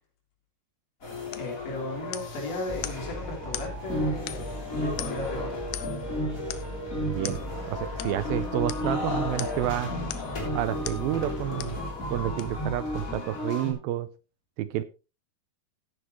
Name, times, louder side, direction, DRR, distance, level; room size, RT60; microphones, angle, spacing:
sound 1, 1.0-13.7, left 1 dB, 20° left, 3.3 m, -33 dB
sound 2, 1.3-1.5 2.1-2.4 2.8-3.1 3.5-3.7 4.3-4.6 5.0-5.3 5.7-6.1 6.5-6.7 7.2-7.4 8.0-8.2 8.7-8.9 9.4-9.7 10.1-10.4 10.9-11.1 11.6-11.8 12.4-12.5, left 14 dB, 90° left, 2.8 m, -38 dB
voice 1, 1.3-5.6, left 2 dB, 65° left, -1 dB, 5.4 m, -36 dB
sound 3, 2.7-13.2, left 1 dB, 5° right, 2.9 m, -39 dB
voice 2, 7.0-7.4 7.7-9.9 10.6-11.8 12.1-14.1 14.6-14.8, right 13 dB, 80° right, 14 dB, 2.3 m, -29 dB
14.0 x 9.9 x 3.2 m, 0.32 s
omnidirectional pair, 4.5 m